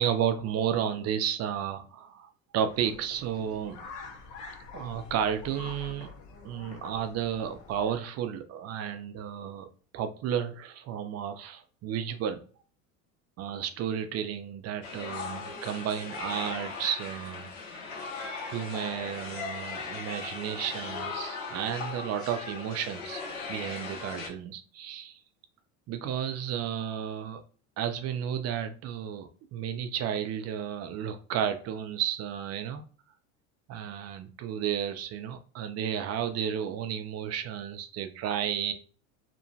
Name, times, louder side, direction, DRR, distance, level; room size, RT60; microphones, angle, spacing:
voice 1, 0.0-3.8 4.7-6.1 6.4-9.7 9.9-12.4 13.4-17.5 18.4-23.2 23.5-25.2 25.9-27.4 27.8-32.8 33.7-38.7, right 9 dB, 40° right, 0.5 m, -32 dB
sound 1, 2.7-8.0, left 4 dB, 55° left, 0.9 m, -46 dB
sound 2, 14.8-24.3, left 4 dB, 80° left, 0.9 m, -38 dB
2.9 x 2.1 x 2.7 m
hypercardioid pair, 90°, 41 cm